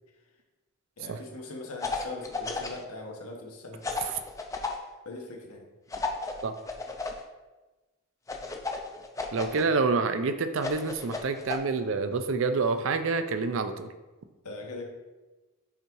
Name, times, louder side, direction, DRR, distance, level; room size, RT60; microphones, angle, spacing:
voice 1, 1.0-3.8 5.0-5.6 14.4-14.8, left 2 dB, 85° left, 0 dB, 1.2 m, -40 dB
sound 1, 1.8-2.8 3.8-4.8 5.9-7.2 8.3-9.6 10.6-11.6, left 3 dB, 15° left, 0.4 m, -33 dB
voice 2, 9.3-13.9, right 4 dB, 60° right, 9 dB, 0.4 m, -27 dB
5.7 x 3.6 x 4.6 m, 1.2 s
head